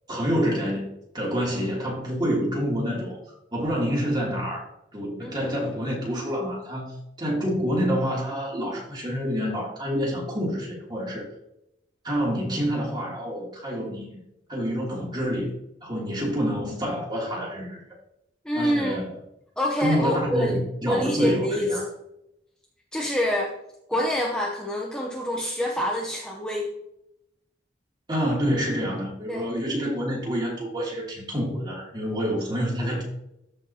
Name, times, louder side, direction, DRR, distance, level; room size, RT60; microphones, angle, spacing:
voice 1, 0.1-0.8 1.1-3.2 3.5-4.7 4.9-6.9 7.2-11.2 12.0-14.2 14.5-15.5 15.8-17.8 18.5-19.1 19.8-21.8 28.1-33.0, equal, 25° right, -3 dB, 2.8 m, -27 dB
voice 2, 18.4-19.1 19.6-20.6 20.9-21.9 22.9-23.6 23.9-26.7 29.3-29.5, equal, 5° left, -2 dB, 0.8 m, -26 dB
13.5 x 5.2 x 2.9 m, 0.83 s
head